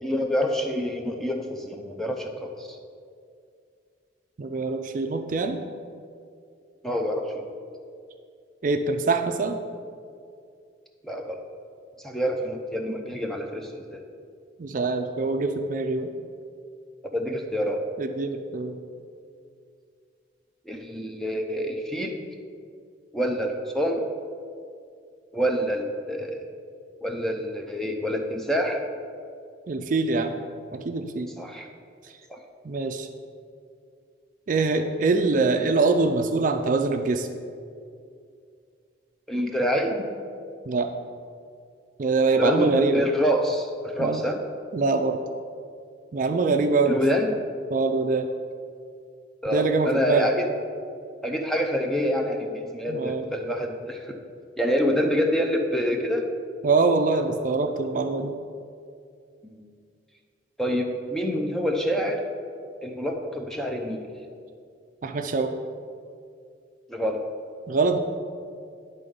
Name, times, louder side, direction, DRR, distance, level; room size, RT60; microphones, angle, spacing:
voice 1, 0.0-2.8 6.8-7.5 11.0-11.4 12.0-14.0 17.0-17.8 20.7-22.2 23.1-24.0 25.3-26.5 27.0-28.8 31.4-31.7 32.3-32.4 39.3-40.1 42.3-44.4 46.9-47.3 49.4-50.5 51.2-54.1 54.6-56.3 59.4-59.6 60.6-62.2 62.8-64.0 66.9-67.2, equal, ahead, 2 dB, 0.5 m, -27 dB
voice 2, 4.4-5.6 8.6-9.6 14.6-16.1 18.0-18.8 29.7-30.4 30.7-31.3 32.6-33.1 34.5-37.3 40.7-40.9 42.0-43.0 44.0-44.2 44.7-45.2 46.1-47.0 47.7-48.3 49.5-50.3 52.9-53.3 56.6-58.3 65.0-65.6 67.7-68.0, right 3 dB, 45° right, 5 dB, 0.4 m, -24 dB
10.0 x 3.8 x 5.3 m, 2.3 s
head